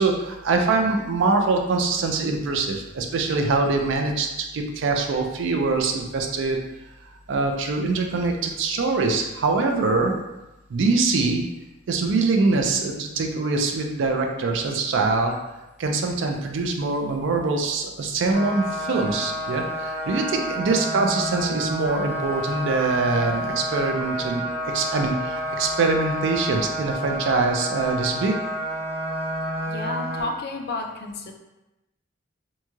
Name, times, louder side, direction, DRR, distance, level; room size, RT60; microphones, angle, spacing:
voice 1, 0.0-6.6 7.3-10.2 10.7-11.5 11.9-15.3 15.8-24.4 24.7-28.3, right 3 dB, 65° right, 3 dB, 0.4 m, -23 dB
sound 1, 18.3-30.2, equal, 30° right, 0.8 m, -30 dB
voice 2, 20.6-20.9 29.7-31.3, left 3 dB, 50° left, 3 dB, 0.3 m, -32 dB
3.0 x 2.7 x 2.3 m, 0.99 s
head